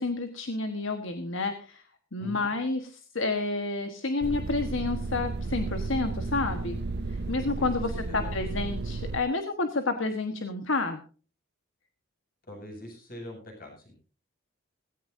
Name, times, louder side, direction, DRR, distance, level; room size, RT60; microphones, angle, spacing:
voice 1, 0.0-1.8 2.1-6.8 7.1-11.0, left 3 dB, 65° left, 6 dB, 1.4 m, -30 dB
sound 1, 4.2-9.2, right 3 dB, 50° right, 0.5 m, -33 dB
voice 2, 12.5-13.9, equal, 45° left, 1 dB, 7.9 m, -43 dB
17.5 x 16.5 x 2.7 m, 0.38 s
head